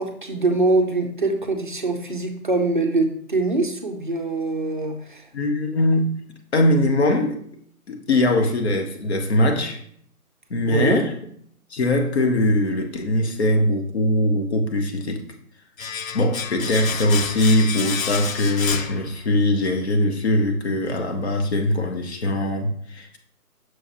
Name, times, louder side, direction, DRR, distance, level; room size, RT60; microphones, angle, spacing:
voice 1, 0.0-5.2 10.7-11.0, right 3 dB, 35° right, 2 dB, 0.5 m, -23 dB
voice 2, 5.3-6.2 6.5-7.4 7.9-9.8 10.5-11.1 11.7-15.3 16.1-23.2, left 1 dB, 45° left, 5 dB, 0.9 m, -21 dB
Domestic sounds home sounds, 15.8-19.6 19.9-20.0, left 7 dB, 60° left, 0.5 m, -30 dB
6.3 x 5.8 x 2.6 m, 0.63 s
figure-of-eight pair, 150°, 46 cm